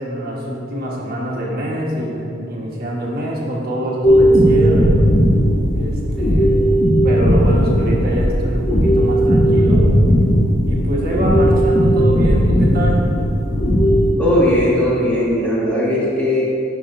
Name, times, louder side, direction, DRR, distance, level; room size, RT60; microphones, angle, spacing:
voice 1, 0.0-5.0 5.7-6.6 6.9-9.9 10.7-13.1, right 1 dB, 45° right, -3 dB, 1.4 m, -25 dB
sound 1, 4.0-14.1, equal, 30° left, 1.0 m, -15 dB
voice 2, 14.2-16.5, equal, 5° left, -8 dB, 1.7 m, -18 dB
11.0 x 6.0 x 2.6 m, 2.8 s
head